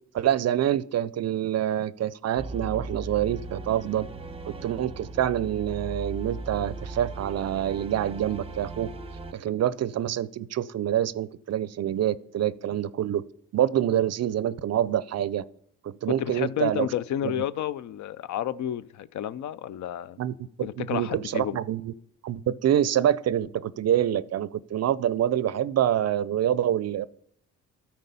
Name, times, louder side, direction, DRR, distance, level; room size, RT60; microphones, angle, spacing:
voice 1, 0.1-4.1 4.5-8.9 9.3-13.2 13.5-15.4 15.8-16.9 17.2-17.3 20.2-21.9 22.2-27.1, right 11 dB, 50° right, 0.5 m, -26 dB
sound 1, 2.4-9.3, right 2 dB, 15° right, 0.8 m, -38 dB
voice 2, 16.1-20.2 20.6-21.6, left 11 dB, 60° left, 0.5 m, -31 dB
12.5 x 4.4 x 5.4 m
supercardioid pair, 70°, 33 cm